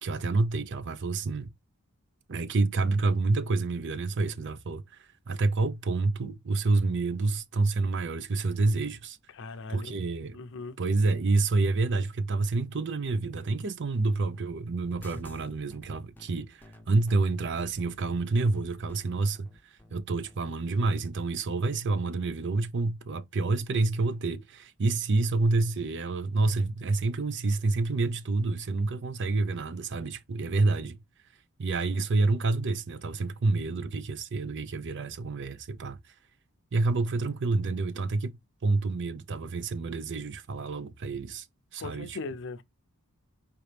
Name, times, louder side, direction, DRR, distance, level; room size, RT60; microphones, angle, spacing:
voice 1, 0.0-1.5 2.3-9.2 9.7-10.4 10.8-19.5 19.9-31.0 31.6-36.0 36.7-38.4 38.6-41.5 41.7-42.2, right 3 dB, 55° right, 0.6 m, -28 dB
voice 2, 9.4-9.9 10.3-10.8 41.8-42.6, left 3 dB, 60° left, 0.6 m, -38 dB
sound 1, 14.8-20.9, left 1 dB, 10° left, 0.7 m, -50 dB
5.0 x 2.9 x 3.3 m
head